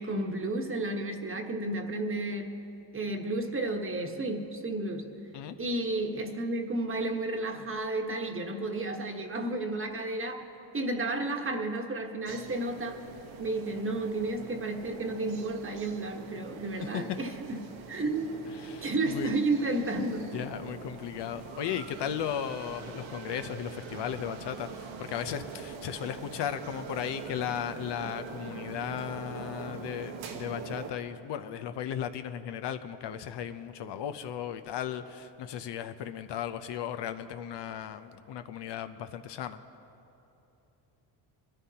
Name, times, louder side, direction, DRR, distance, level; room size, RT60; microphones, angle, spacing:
voice 1, 0.0-2.6 2.9-5.1 5.6-10.4 10.7-13.0 13.4-18.3 18.8-20.2, right 2 dB, 25° right, 4 dB, 1.2 m, -32 dB
sound 1, 12.2-30.9, right 5 dB, 80° right, 1.3 m, -43 dB
voice 2, 16.8-17.2 18.6-19.3 20.3-39.6, left 9 dB, 60° left, 9 dB, 0.7 m, -36 dB
22.0 x 13.5 x 2.9 m, 2.9 s
cardioid pair, 105°, 47 cm